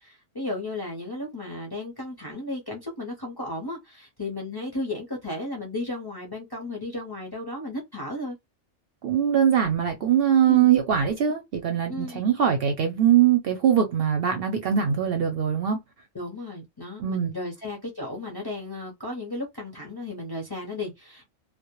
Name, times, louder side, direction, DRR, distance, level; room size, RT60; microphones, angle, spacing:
voice 1, 0.0-8.4 10.5-10.7 11.9-12.2 16.1-21.2, left 2 dB, 25° left, 0.5 m, -34 dB
voice 2, 9.0-15.8 17.0-17.3, right 9 dB, 65° right, 0.6 m, -22 dB
2.1 x 2.1 x 2.8 m
omnidirectional pair, 1.3 m